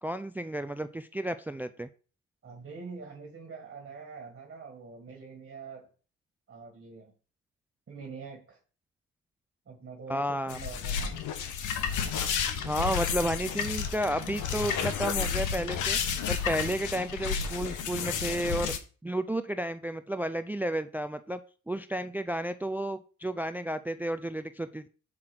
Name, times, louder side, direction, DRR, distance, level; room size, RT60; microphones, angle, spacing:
voice 1, 0.0-1.9 10.1-10.6 12.6-16.0 16.3-18.7 19.0-21.4 21.7-24.9, right 1 dB, 5° right, 12 dB, 0.4 m, -32 dB
voice 2, 2.4-5.9 6.5-7.1 7.9-8.6 9.7-11.2 12.7-13.3, right 5 dB, 40° right, 2 dB, 1.8 m, -45 dB
sound 1, 10.5-18.8, left 7 dB, 85° left, 1.1 m, -31 dB
6.1 x 4.9 x 6.0 m, 0.38 s
cardioid pair, 90°, 30 cm